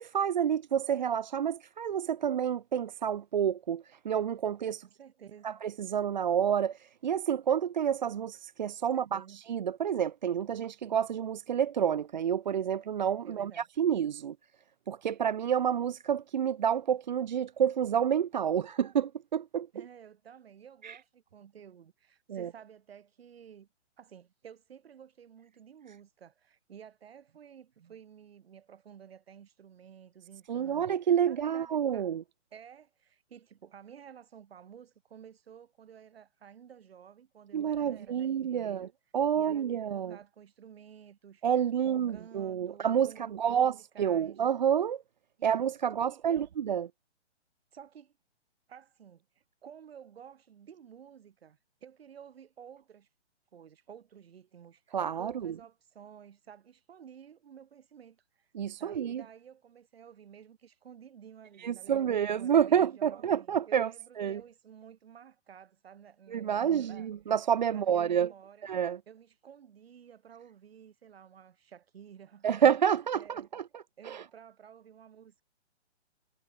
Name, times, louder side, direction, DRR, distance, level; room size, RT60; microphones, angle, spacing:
voice 1, 0.0-4.8 5.4-14.4 14.9-19.7 20.8-21.0 22.3-22.5 30.5-32.2 37.5-38.9 39.1-40.2 41.4-45.0 45.4-46.9 54.9-55.5 58.5-59.2 61.6-63.9 64.2-64.4 66.3-68.3 68.6-69.0 72.4-74.2, right 8 dB, 40° right, 0.6 m, -29 dB
voice 2, 4.8-5.6 8.9-9.4 13.2-13.7 19.7-23.7 24.0-30.9 31.3-32.1 32.5-38.9 39.3-41.4 41.8-44.4 45.4-46.5 47.7-48.1 48.7-53.1 53.5-58.5 58.8-67.1 67.7-68.7 69.1-72.7 73.1-73.5 74.0-75.4, right 8 dB, 55° right, 4.4 m, -53 dB
hypercardioid pair, 155°, 36 cm